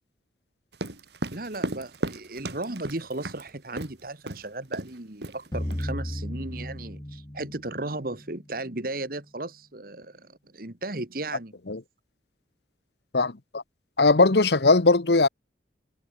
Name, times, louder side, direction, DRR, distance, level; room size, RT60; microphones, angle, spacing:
sound 1, 0.7-3.4 3.8-3.9 4.3-4.4 4.7-5.0 5.2-5.8, right 1 dB, 70° right, 3.3 m, -34 dB
voice 1, 1.3-11.5, right 2 dB, 55° right, 2.0 m, -35 dB
sound 2, 5.5-8.6, equal, 20° left, 1.5 m, -35 dB
voice 2, 13.1-13.6 14.0-15.3, left 3 dB, 70° left, 1.1 m, -19 dB
head